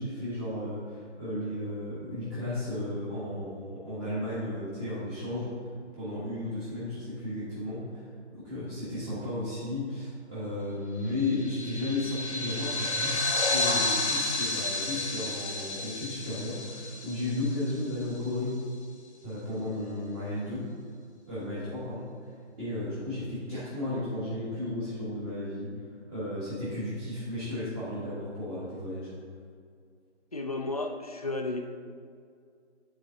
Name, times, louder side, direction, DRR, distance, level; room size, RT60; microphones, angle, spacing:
voice 1, 0.0-5.5 6.0-18.6 19.2-20.7 21.3-25.7 26.1-29.1, left 1 dB, 15° right, -12 dB, 1.3 m, -34 dB
sound 1, 11.2-18.0, left 2 dB, 70° left, 1.0 m, -31 dB
voice 2, 30.3-31.7, left 2 dB, 35° left, 4 dB, 0.4 m, -33 dB
9.9 x 4.0 x 3.8 m, 2.2 s
figure-of-eight pair, 155°, 35 cm